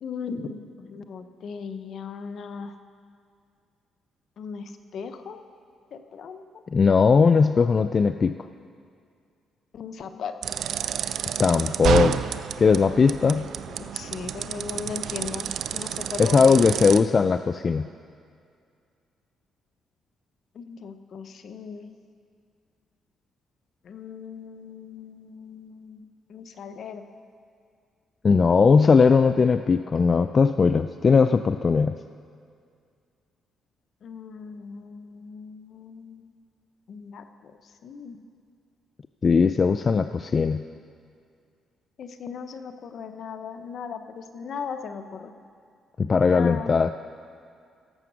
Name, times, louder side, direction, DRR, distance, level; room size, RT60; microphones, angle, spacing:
voice 1, 0.0-2.7 4.4-5.4 5.9-6.4 9.7-10.4 13.7-16.7 20.5-21.9 23.8-26.0 26.3-27.0 34.0-36.3 36.9-37.5 37.8-38.2 42.0-45.3 46.3-46.7, left 6 dB, 65° left, 8 dB, 0.9 m, -38 dB
voice 2, 6.7-8.3 11.4-12.2 12.6-13.5 16.2-17.9 28.2-32.0 39.2-40.6 46.0-46.9, left 5 dB, 40° left, 10 dB, 0.3 m, -19 dB
sound 1, 10.4-17.0, right 9 dB, 70° right, 0.5 m, -30 dB
17.0 x 7.8 x 6.3 m, 2.3 s
cardioid pair, 90°, 0 cm